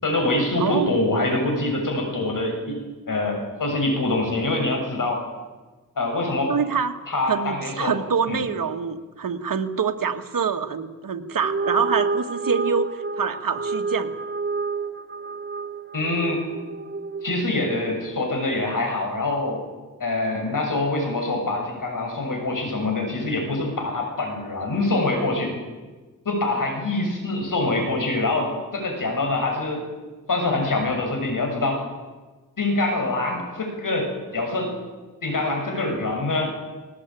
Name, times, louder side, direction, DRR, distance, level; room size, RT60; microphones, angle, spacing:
voice 1, 0.0-2.8 3.1-5.2 6.0-6.5 7.1-7.9 8.3-8.4 15.9-16.4 17.2-19.7 20.0-25.5 26.3-29.9 30.3-31.8 32.6-34.7 35.2-36.5, left 2 dB, 65° left, 2 dB, 7.3 m, -25 dB
voice 2, 0.6-1.0 6.5-7.0 7.3-14.1, right 6 dB, 70° right, 6 dB, 1.6 m, -26 dB
sound 1, 11.3-17.9, right 4 dB, 35° right, 0.8 m, -29 dB
19.5 x 19.5 x 9.1 m, 1.3 s
cardioid pair, 70°, 34 cm